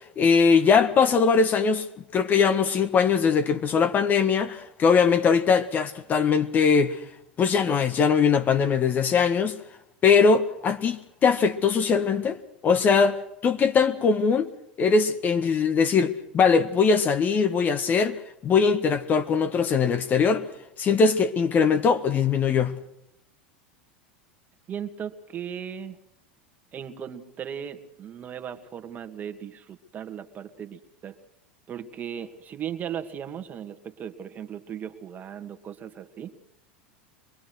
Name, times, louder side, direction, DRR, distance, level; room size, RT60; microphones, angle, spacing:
voice 1, 0.2-1.8 2.1-7.0 7.4-9.6 10.0-12.4 12.6-13.2 13.4-14.5 14.8-20.4 20.8-22.8, left 5 dB, 35° left, 1.5 m, -21 dB
voice 2, 24.7-26.0 26.7-31.2 31.7-36.3, right 8 dB, 35° right, 2.0 m, -37 dB
24.0 x 21.0 x 6.3 m
hypercardioid pair, 85°, 5 cm